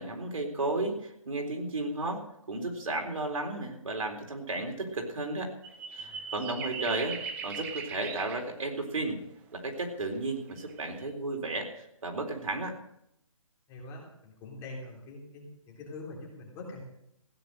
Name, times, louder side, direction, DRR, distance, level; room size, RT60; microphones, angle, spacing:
voice 1, 0.0-2.2 2.5-5.5 5.9-7.2 7.4-9.2 9.5-12.7, right 2 dB, 70° right, 2 dB, 3.9 m, -33 dB
sound 1, 5.6-8.5 10.0-10.1 10.5-11.1, right 5 dB, 10° right, 0.5 m, -39 dB
voice 2, 6.0-6.8 13.7-16.8, left 2 dB, 15° left, -1 dB, 3.3 m, -45 dB
16.0 x 9.2 x 6.6 m, 0.79 s
hypercardioid pair, 160°, 18 cm